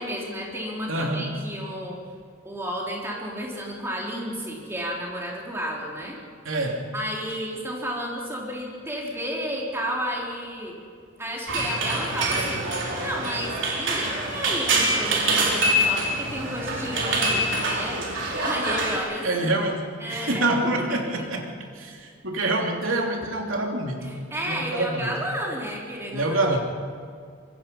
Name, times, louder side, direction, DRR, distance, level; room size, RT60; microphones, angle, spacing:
voice 1, 0.0-2.0 2.4-6.2 6.9-10.8 11.2-12.6 13.0-18.0 18.4-19.5 20.0-20.4 20.8-21.1 24.0-26.4, equal, 15° right, -3 dB, 4.1 m, -32 dB
voice 2, 0.9-1.4 6.4-6.9 19.2-24.1 24.4-25.1 26.1-26.6, right 2 dB, 80° right, 1 dB, 3.1 m, -26 dB
sound 1, 11.5-19.0, right 1 dB, 60° right, 4.4 m, -25 dB
25.0 x 21.5 x 5.6 m, 2.1 s
head